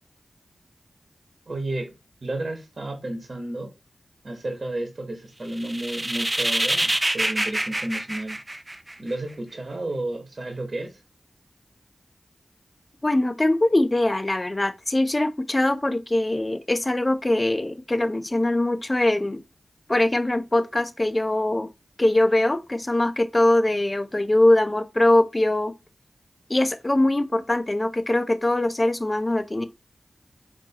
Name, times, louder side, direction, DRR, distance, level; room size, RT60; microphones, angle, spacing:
voice 1, 1.5-1.9 2.2-3.7 4.2-8.4 9.0-11.0, right 2 dB, 50° right, 1.2 m, -32 dB
sound 1, 5.5-9.1, right 1 dB, 25° right, 0.5 m, -26 dB
voice 2, 13.0-19.4 19.9-21.7 22.0-25.7 26.5-29.7, left 1 dB, 30° left, 0.6 m, -22 dB
4.4 x 2.9 x 4.0 m
cardioid pair, 50°, 0 cm